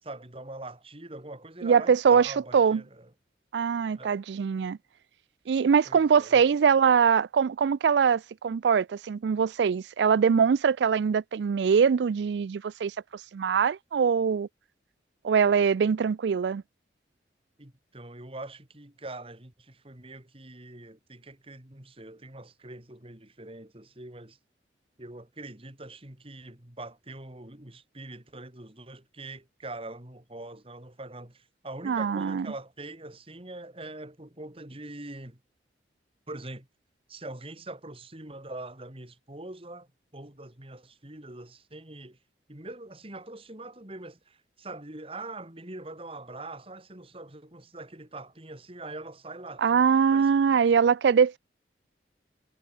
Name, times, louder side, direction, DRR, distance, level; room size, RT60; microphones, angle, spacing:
voice 1, 0.0-3.1 3.9-4.2 5.9-6.4 17.6-24.4 25.0-35.4 36.3-36.7 37.1-42.2 42.5-50.8, right 2 dB, 30° right, 2.6 m, -43 dB
voice 2, 1.6-2.8 3.5-4.8 5.5-12.9 13.3-14.5 15.2-16.6 31.8-32.5 49.6-51.4, right 6 dB, 75° right, 0.4 m, -23 dB
head